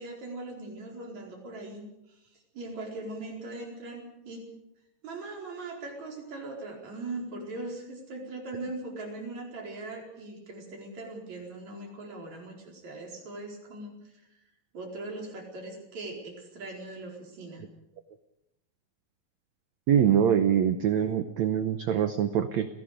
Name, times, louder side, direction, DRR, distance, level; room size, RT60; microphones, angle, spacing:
voice 1, 0.0-1.8 2.5-4.5 5.0-14.2 14.7-17.7, right 2 dB, 45° right, 0 dB, 5.7 m, -40 dB
voice 2, 19.9-22.7, right 9 dB, 80° right, 9 dB, 1.6 m, -24 dB
29.5 x 17.5 x 5.1 m, 0.85 s
omnidirectional pair, 4.4 m